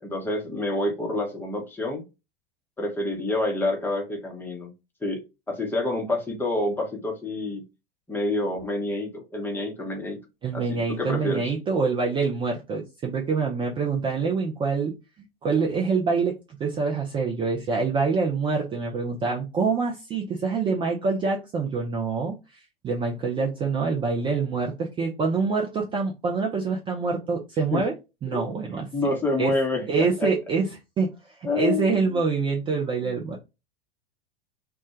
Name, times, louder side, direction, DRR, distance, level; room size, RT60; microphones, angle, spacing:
voice 1, 0.0-2.0 2.8-4.7 5.0-5.2 5.5-7.6 8.1-10.2 10.5-11.5 27.7-27.9 28.3-28.4 28.9-30.3 31.4-32.2 33.0-33.1, left 2 dB, 5° left, 0.7 m, -28 dB
voice 2, 10.4-27.9 28.2-29.1 29.4-29.6 29.9-33.4, right 4 dB, 15° right, 0.4 m, -26 dB
2.1 x 2.1 x 2.8 m
figure-of-eight pair, 85°, 30 cm